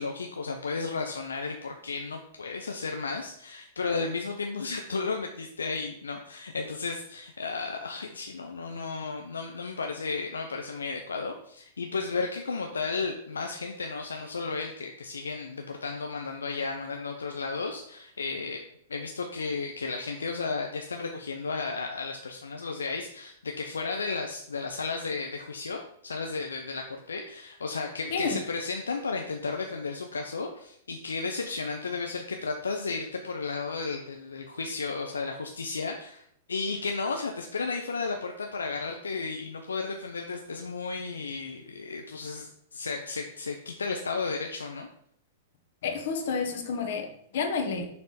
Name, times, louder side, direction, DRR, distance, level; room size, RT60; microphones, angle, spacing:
voice 1, 0.0-18.6 18.9-44.9, left 4 dB, 85° left, 3 dB, 0.5 m, -33 dB
voice 2, 45.8-47.9, left 5 dB, 65° left, 3 dB, 1.3 m, -30 dB
6.5 x 3.5 x 4.2 m, 0.68 s
hypercardioid pair, 110°, 0 cm